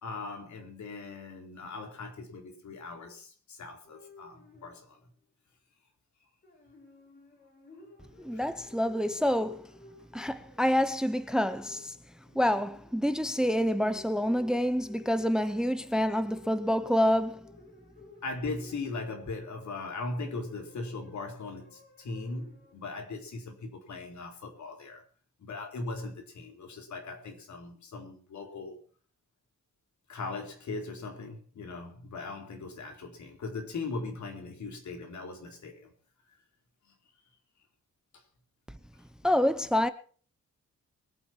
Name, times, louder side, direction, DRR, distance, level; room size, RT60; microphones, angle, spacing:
voice 1, 0.0-5.0 8.3-8.4 10.3-10.4 18.2-25.0 25.4-28.8 30.1-35.9 36.9-37.0 38.1-38.2, left 3 dB, 70° left, 4.0 m, -39 dB
sound 1, 3.8-5.2 6.4-23.1, left 2 dB, 35° left, 7.3 m, -55 dB
voice 2, 8.2-9.7 10.1-11.9 12.3-17.4 39.2-39.9, equal, ahead, 0.7 m, -27 dB
23.0 x 9.4 x 4.5 m
wide cardioid pair, 135°, 30 cm